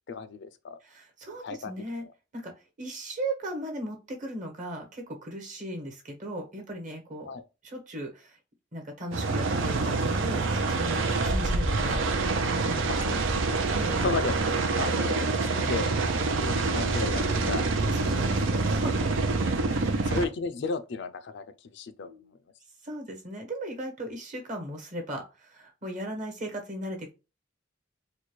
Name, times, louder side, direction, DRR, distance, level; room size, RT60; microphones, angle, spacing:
voice 1, 0.1-0.8 1.4-1.7 2.0-2.1 7.2-7.4 12.9-13.6 13.9-14.3 14.8-15.9 16.4-18.1 18.5-18.6 20.1-22.1, left 4 dB, 65° left, 0.4 m, -34 dB
voice 2, 0.8-2.0 2.3-2.5 2.8-7.3 7.6-8.4 8.7-12.0 12.5-13.0 13.7-14.0 17.9-19.2 19.6-20.1 22.0-22.3 22.8-27.1, right 1 dB, 40° right, 1.2 m, -37 dB
sound 1, 9.1-20.2, right 3 dB, 80° right, 0.5 m, -26 dB
3.9 x 2.3 x 3.0 m
head